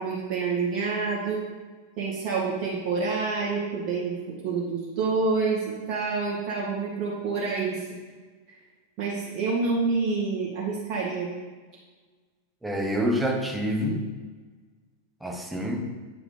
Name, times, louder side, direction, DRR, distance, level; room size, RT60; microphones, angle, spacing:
voice 1, 0.0-1.4 2.0-7.8 8.5-8.6 9.0-11.3, right 4 dB, 35° right, -7 dB, 2.1 m, -28 dB
voice 2, 12.6-14.1 15.2-15.9, equal, 5° right, 2 dB, 1.1 m, -27 dB
8.4 x 4.8 x 5.3 m, 1.4 s
figure-of-eight pair, 90°, 0 cm